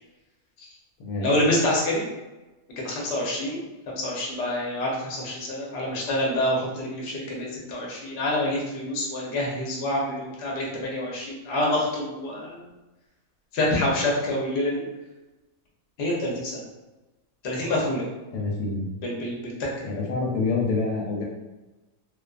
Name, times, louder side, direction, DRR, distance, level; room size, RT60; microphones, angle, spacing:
voice 1, 1.2-2.1 2.8-12.7 13.5-14.8 16.0-16.6 17.4-18.1 19.0-19.7, left 1 dB, 55° left, -3 dB, 0.8 m, -27 dB
voice 2, 18.3-18.9 19.8-21.2, left 3 dB, 90° left, -1 dB, 1.1 m, -27 dB
2.4 x 2.4 x 2.3 m, 1.1 s
omnidirectional pair, 1.6 m